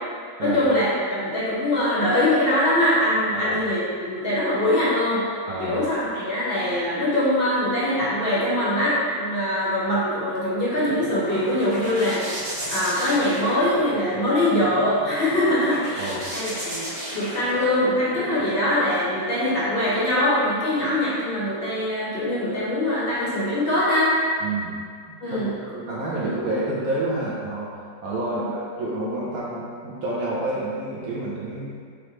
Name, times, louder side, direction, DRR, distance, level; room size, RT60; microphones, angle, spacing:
voice 1, 0.4-5.2 5.6-12.2 12.7-16.1 16.3-24.2 25.2-25.5 28.2-28.5, left 1 dB, 50° left, -8 dB, 0.6 m, -23 dB
voice 2, 5.5-5.8 15.9-16.2 24.4-24.8 25.1-31.8, right 2 dB, 70° right, -6 dB, 0.8 m, -29 dB
sound 1, 10.5-18.4, equal, 40° right, 1.0 m, -34 dB
5.2 x 3.0 x 3.1 m, 2.1 s
omnidirectional pair, 2.2 m